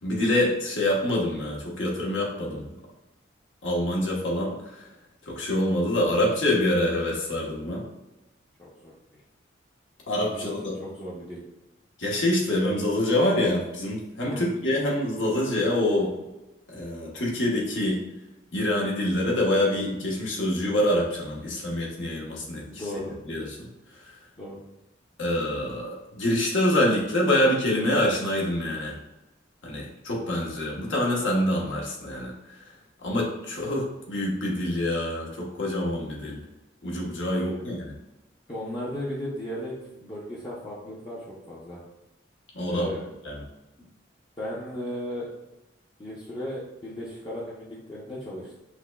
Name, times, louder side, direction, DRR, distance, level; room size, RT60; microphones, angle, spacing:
voice 1, 0.0-2.8 3.6-4.8 5.3-7.8 10.1-10.7 12.0-16.1 16.7-18.0 18.5-22.8 23.3-23.7 24.0-24.1 25.2-28.9 29.6-32.6 33.0-36.4 36.8-38.0 42.5-42.9 43.2-43.4, left 1 dB, 80° left, -3 dB, 1.0 m, -26 dB
voice 2, 8.6-8.9 10.3-11.4 14.2-14.5 22.6-23.1 24.4-24.6 37.3-37.5 38.5-39.7 40.0-41.8 42.7-43.1 43.8-43.9 44.4-45.3 46.0-48.6, left 1 dB, 25° left, -7 dB, 0.6 m, -36 dB
5.8 x 2.1 x 2.2 m, 0.99 s
head